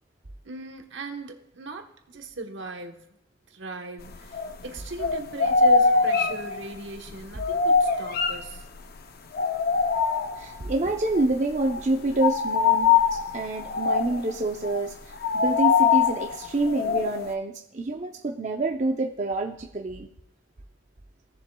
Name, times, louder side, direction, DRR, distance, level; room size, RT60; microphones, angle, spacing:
voice 1, 0.4-3.1 3.5-8.6, right 2 dB, 70° right, 4 dB, 1.1 m, -38 dB
sound 1, 4.0-4.7 5.0-8.9 9.3-10.7 11.0-11.3 11.5-17.3, left 5 dB, 50° left, 0.6 m, -23 dB
voice 2, 10.4-14.9 15.3-20.1, right 2 dB, 40° right, 2 dB, 0.6 m, -27 dB
16.5 x 7.2 x 2.3 m, 0.76 s
head